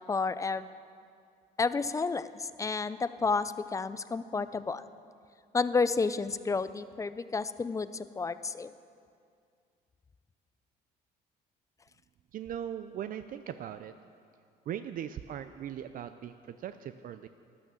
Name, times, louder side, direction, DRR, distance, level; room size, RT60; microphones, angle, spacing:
voice 1, 0.1-0.7 1.6-4.9 5.5-8.7, left 4 dB, 20° left, 14 dB, 0.5 m, -31 dB
voice 2, 12.3-13.9 14.7-17.3, right 10 dB, 55° right, 10 dB, 0.5 m, -39 dB
12.5 x 11.5 x 7.0 m, 2.3 s
cardioid pair, 110°, 17 cm